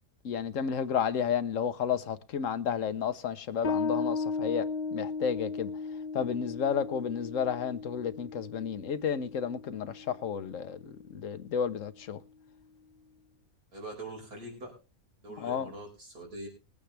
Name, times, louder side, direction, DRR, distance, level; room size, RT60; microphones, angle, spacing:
voice 1, 0.2-12.2 15.4-15.7, left 7 dB, 60° left, 1.3 m, -32 dB
Bass guitar, 3.6-10.8, left 4 dB, 90° left, 1.9 m, -36 dB
voice 2, 13.7-14.7 15.2-16.5, right 1 dB, 90° right, 5.6 m, -43 dB
21.5 x 8.7 x 3.4 m
omnidirectional pair, 1.6 m